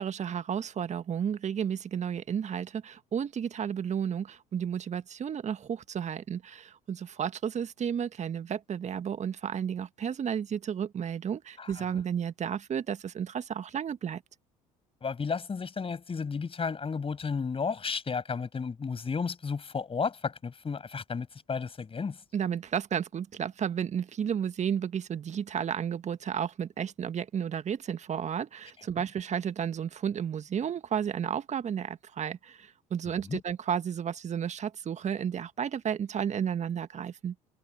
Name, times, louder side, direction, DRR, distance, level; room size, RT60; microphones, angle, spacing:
voice 1, 0.0-14.2 22.3-37.3, right 8 dB, 40° right, 1.6 m, -32 dB
voice 2, 15.0-22.2 33.3-33.4, left 5 dB, 30° left, 7.9 m, -33 dB
hypercardioid pair, 60°, 18 cm